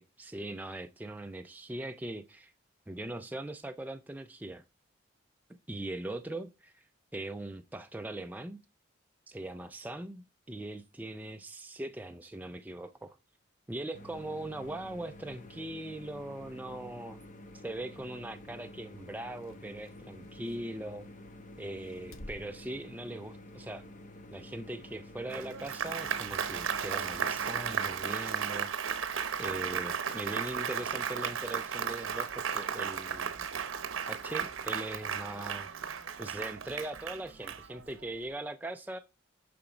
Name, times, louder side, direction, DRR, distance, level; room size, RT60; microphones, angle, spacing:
voice 1, 0.0-2.5 2.9-4.6 5.7-6.9 7.1-8.6 9.3-13.2 13.7-17.2 17.5-21.0 21.6-23.8 24.3-29.1 29.4-33.5 34.1-35.7 36.2-39.0, right 1 dB, 10° right, 0.3 m, -40 dB
sound 1, 13.9-27.9, left 1 dB, 35° left, 0.9 m, -50 dB
sound 2, 19.4-21.2 21.7-23.6 23.9-24.1 25.4-26.2 26.7-26.8 27.7-27.8 28.0-28.1 28.3-28.4 29.3-29.5 29.8-29.9 30.3-30.9 32.8-32.9 33.9-34.7 36.0-36.1, left 1 dB, 80° left, 1.1 m, -55 dB
Applause, 25.3-38.0, right 7 dB, 80° right, 0.8 m, -35 dB
6.8 x 5.9 x 3.8 m
head